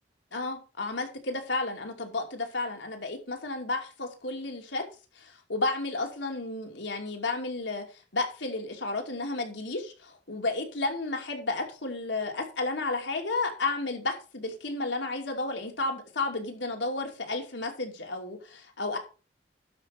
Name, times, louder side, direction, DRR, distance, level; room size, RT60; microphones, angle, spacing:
voice 1, 0.3-4.8 5.2-7.8 8.1-19.0, left 3 dB, 75° left, 2 dB, 2.6 m, -32 dB
12.0 x 5.5 x 5.0 m, 0.34 s
head